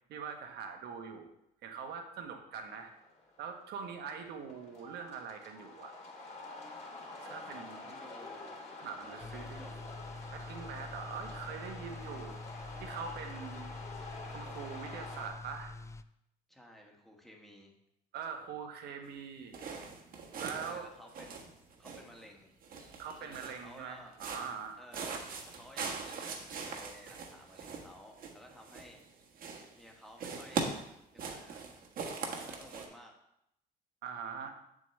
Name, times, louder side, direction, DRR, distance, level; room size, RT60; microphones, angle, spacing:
voice 1, 0.1-1.3 1.6-2.9 3.4-5.9 7.2-8.0 8.8-9.7 10.3-12.4 12.8-13.7 14.3-15.7 18.1-19.6 20.4-20.9 23.0-24.8 34.0-34.5, right 6 dB, 75° right, 5 dB, 1.3 m, -43 dB
sound 1, 2.6-15.3, left 2 dB, 45° left, 2.8 m, -48 dB
voice 2, 7.3-8.6 9.0-9.7 12.0-12.4 16.5-17.7 20.6-21.5 21.8-22.5 23.2-24.1 24.8-29.0 29.8-30.7 31.1-31.7 32.3-33.1 34.4-34.5, equal, ahead, 0 dB, 1.6 m, -55 dB
sound 2, 9.2-16.0, left 2 dB, 15° left, 0.3 m, -46 dB
sound 3, 19.5-20.8 21.1-22.2 22.6-23.7 24.1-24.6 24.9-29.1 29.4-29.9 30.2-32.9, right 5 dB, 55° right, 1.4 m, -41 dB
7.6 x 7.6 x 3.3 m, 0.80 s
cardioid pair, 110°, 17 cm